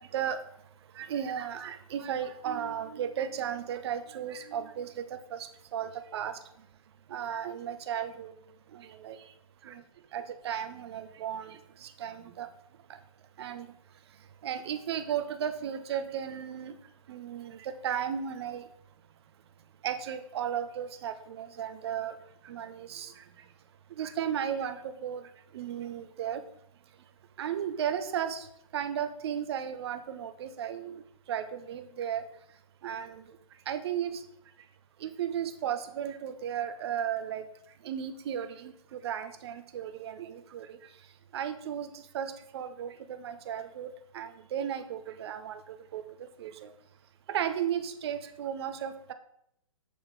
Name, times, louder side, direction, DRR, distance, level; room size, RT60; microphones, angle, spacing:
voice 1, 0.9-6.4 7.1-8.3 8.7-9.2 9.6-9.8 10.1-12.5 13.4-13.7 14.4-16.7 17.1-18.6 19.8-22.1 22.4-23.3 24.0-25.3 25.5-26.4 27.4-28.5 28.7-31.0 31.3-32.2 32.8-33.2 33.7-34.2 35.0-37.4 37.8-40.8 41.3-45.6 45.9-46.7 47.3-49.1, right 9 dB, 45° right, 9 dB, 1.2 m, -35 dB
8.5 x 6.9 x 5.2 m, 0.74 s
hypercardioid pair, 135°, 18 cm